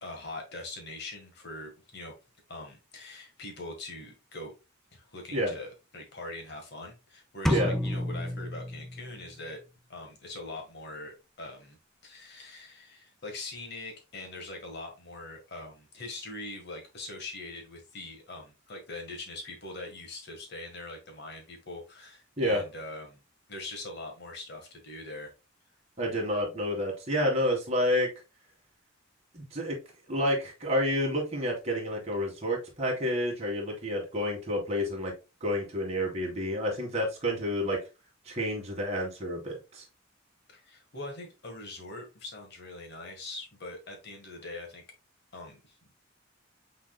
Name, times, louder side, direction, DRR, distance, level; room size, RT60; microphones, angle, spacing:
voice 1, 0.0-2.1 2.5-4.5 4.9-9.6 9.9-11.8 12.0-23.2 23.5-25.3 40.5-44.8 45.3-45.8, left 2 dB, 55° left, 3 dB, 1.5 m, -42 dB
sound 1, 7.5-9.3, equal, ahead, 0.4 m, -30 dB
voice 2, 26.0-28.1 29.3-29.8 30.1-35.1 35.4-37.8 38.3-39.8, equal, 30° right, 0 dB, 1.7 m, -29 dB
6.2 x 3.9 x 2.2 m, 0.28 s
head